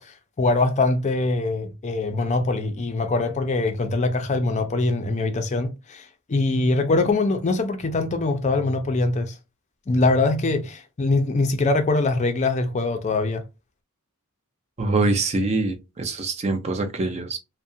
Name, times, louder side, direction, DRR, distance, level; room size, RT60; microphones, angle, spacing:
voice 1, 0.0-9.3 9.9-13.4, left 3 dB, 30° left, 0.4 m, -23 dB
voice 2, 14.8-17.4, right 3 dB, 30° right, 0.4 m, -24 dB
2.4 x 2.1 x 2.6 m
head